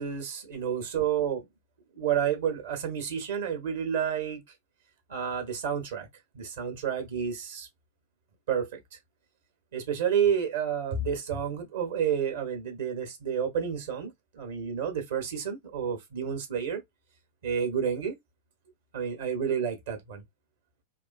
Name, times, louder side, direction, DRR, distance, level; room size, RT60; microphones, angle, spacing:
voice 1, 0.0-1.5 1.9-4.4 5.1-6.1 6.3-7.7 8.5-8.8 9.7-16.8 17.4-18.2 18.9-20.2, right 8 dB, 60° right, 1.0 m, -30 dB
3.5 x 2.4 x 2.3 m
figure-of-eight pair, 90°, 0 cm